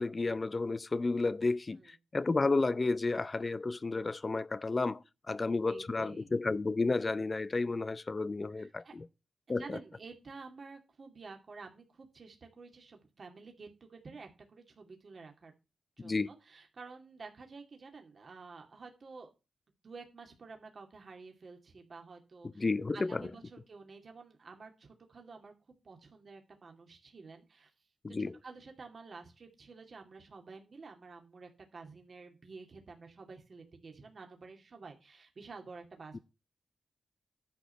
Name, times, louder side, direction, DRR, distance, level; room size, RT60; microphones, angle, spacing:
voice 1, 0.0-9.1 9.5-9.8 16.0-16.3 22.5-23.3 28.0-28.4 36.1-36.2, left 3 dB, 35° left, 0.6 m, -32 dB
voice 2, 5.7-6.3 8.5-9.0 9.5-15.5 16.0-19.3 19.8-25.5 25.8-27.7 28.4-36.2, right 4 dB, 55° right, 2.3 m, -51 dB
10.5 x 5.0 x 6.8 m
cardioid pair, 80°, 0 cm